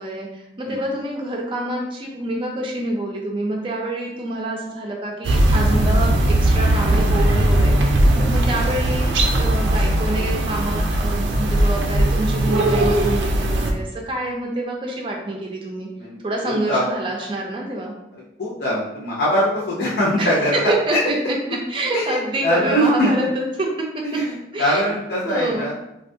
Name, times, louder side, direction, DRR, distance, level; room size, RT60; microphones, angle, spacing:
voice 1, 0.0-15.9 16.2-17.9 20.2-24.0 24.5-24.9 25.2-25.7, right 1 dB, 30° right, 0 dB, 0.4 m, -27 dB
sound 1, 5.2-13.7, right 1 dB, 90° right, 0.4 m, -18 dB
voice 2, 16.4-16.8 18.4-20.7 21.9-23.1 24.1-25.7, equal, 70° left, -7 dB, 0.6 m, -22 dB
3.4 x 2.3 x 2.6 m, 0.85 s
head